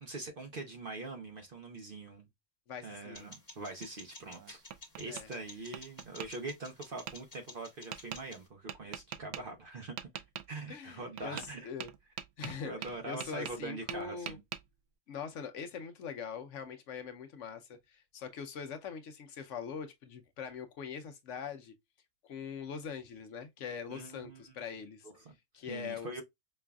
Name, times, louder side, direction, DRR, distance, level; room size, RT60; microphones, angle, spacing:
voice 1, 0.0-2.3 2.8-4.6 5.0-10.1 10.5-11.7 12.6-14.4 23.9-24.4 25.0-25.3 25.7-26.2, right 3 dB, 50° right, 0.8 m, -43 dB
voice 2, 2.7-3.3 5.1-5.3 10.7-11.9 12.4-14.4 15.1-21.7 22.2-25.1 25.5-26.2, left 6 dB, 65° left, 0.9 m, -42 dB
sound 1, 3.1-8.5, left 2 dB, 30° left, 1.7 m, -53 dB
Tap, 4.2-5.3 5.7-6.3 7.1-7.2 7.9-8.2 8.7-9.4 10.0-10.5 11.2-11.5 11.8-13.6 13.9-14.6, right 10 dB, 90° right, 1.1 m, -42 dB
5.3 x 2.4 x 2.2 m
omnidirectional pair, 1.5 m